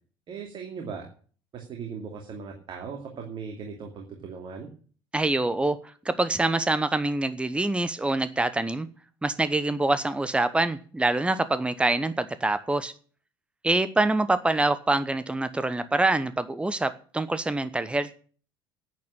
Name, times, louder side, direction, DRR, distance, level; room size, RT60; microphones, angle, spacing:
voice 1, 0.3-1.1 1.5-4.7, right 6 dB, 40° right, 2.7 m, -38 dB
voice 2, 5.1-5.8 6.0-8.9 9.2-12.9 13.6-18.1, right 2 dB, 10° right, 1.0 m, -25 dB
10.5 x 8.7 x 8.7 m
figure-of-eight pair, 60°, 12 cm